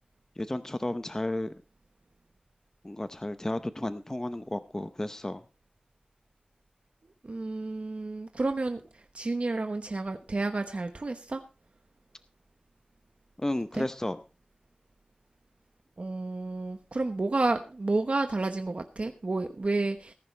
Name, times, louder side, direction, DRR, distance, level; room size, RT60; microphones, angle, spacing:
voice 1, 0.4-1.5 2.8-5.4 13.4-14.2, left 1 dB, 20° left, 11 dB, 0.7 m, -32 dB
voice 2, 7.2-11.4 13.7-13.9 16.0-20.1, right 3 dB, 50° right, 7 dB, 1.1 m, -30 dB
19.5 x 11.0 x 3.3 m, 0.31 s
wide cardioid pair, 80°, 3 cm